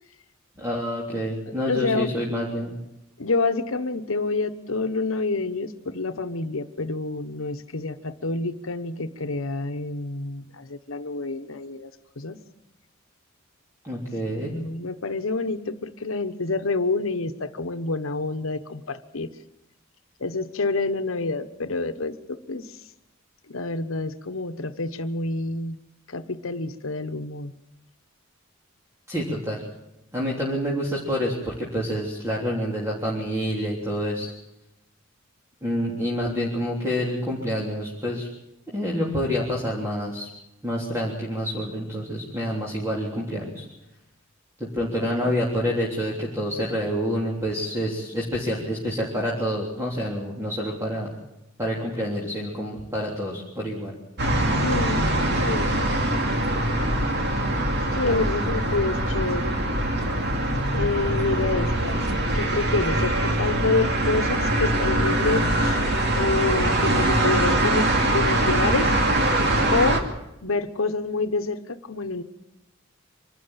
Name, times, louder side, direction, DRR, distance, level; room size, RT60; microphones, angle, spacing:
voice 1, 0.6-2.8 13.8-14.5 29.1-29.6 30.1-34.3 35.6-38.3 38.7-40.3 40.6-43.6 44.6-51.1 51.6-53.9 57.9-58.2, equal, 15° right, -4 dB, 3.4 m, -28 dB
voice 2, 1.7-2.1 3.2-11.9 12.2-12.4 14.3-19.3 20.2-22.7 23.5-25.8 26.1-27.5 45.0-45.4 54.6-55.1 55.4-55.8 57.9-59.5 60.7-62.0 62.3-65.8 66.1-68.9 69.7-70.0 70.4-72.2, left 3 dB, 80° left, 9 dB, 1.1 m, -28 dB
sound 1, 54.2-70.0, right 1 dB, 55° right, 2.7 m, -23 dB
25.0 x 12.5 x 8.9 m, 0.92 s
head